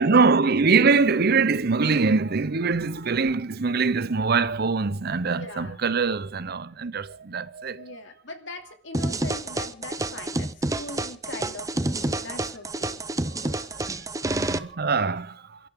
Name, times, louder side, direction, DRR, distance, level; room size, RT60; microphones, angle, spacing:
voice 1, 0.0-8.0 13.3-13.7 14.3-15.6, right 4 dB, 55° right, 0.8 m, -23 dB
voice 2, 5.3-5.8 7.7-13.0, left 2 dB, 75° left, 2.6 m, -41 dB
sound 1, 8.9-14.6, right 2 dB, 20° right, 0.7 m, -28 dB
28.5 x 12.5 x 3.7 m
head